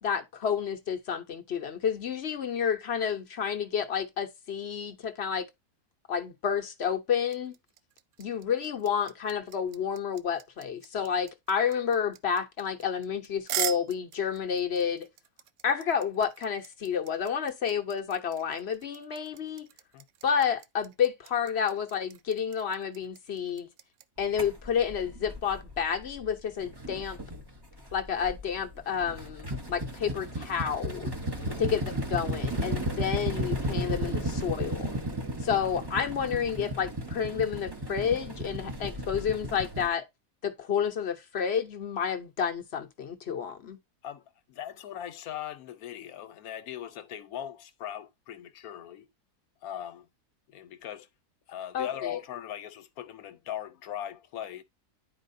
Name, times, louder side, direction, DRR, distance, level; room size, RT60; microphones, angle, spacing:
voice 1, 0.0-5.5 6.1-7.6 8.2-15.1 15.6-19.7 20.2-23.7 24.2-27.2 27.9-31.1 31.6-35.0 35.4-40.0 40.4-43.8 51.7-52.2, left 7 dB, 50° left, 0.9 m, -30 dB
sound 1, 7.2-24.0, right 11 dB, 70° right, 0.7 m, -40 dB
sound 2, 24.4-26.3 26.6-39.9, right 1 dB, 20° right, 0.7 m, -34 dB
voice 2, 44.0-49.1 49.6-50.1 50.5-51.1 51.5-54.6, left 10 dB, 70° left, 1.2 m, -40 dB
10.5 x 4.4 x 2.6 m
omnidirectional pair, 1.7 m